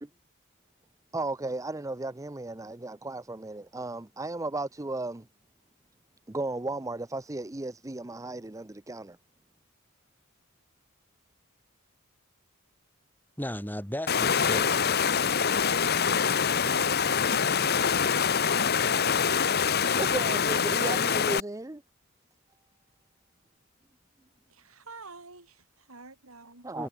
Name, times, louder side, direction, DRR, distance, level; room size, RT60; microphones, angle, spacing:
voice 1, 1.1-5.3 6.3-9.2 20.0-21.8 26.6-26.9, right 2 dB, 15° right, 0.6 m, -35 dB
voice 2, 13.4-14.8 19.7-20.3 26.8-26.9, left 1 dB, 10° left, 5.7 m, -37 dB
Water, 14.1-21.4, left 7 dB, 50° left, 1.1 m, -25 dB
voice 3, 16.6-17.8 24.5-26.7, right 3 dB, 80° right, 6.5 m, -48 dB
head